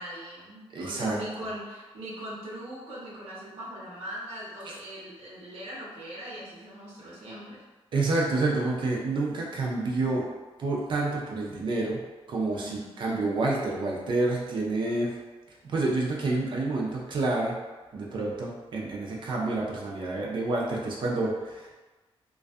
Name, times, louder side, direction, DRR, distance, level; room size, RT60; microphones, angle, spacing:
voice 1, 0.0-7.6 12.5-12.9, equal, 80° right, -6 dB, 0.7 m, -40 dB
voice 2, 0.7-1.2 7.9-10.2 10.6-12.0 12.3-15.1 15.6-17.5 17.9-21.7, right 2 dB, 50° right, -2 dB, 0.4 m, -28 dB
2.5 x 2.2 x 2.3 m, 1.2 s
wide cardioid pair, 175°, 10 cm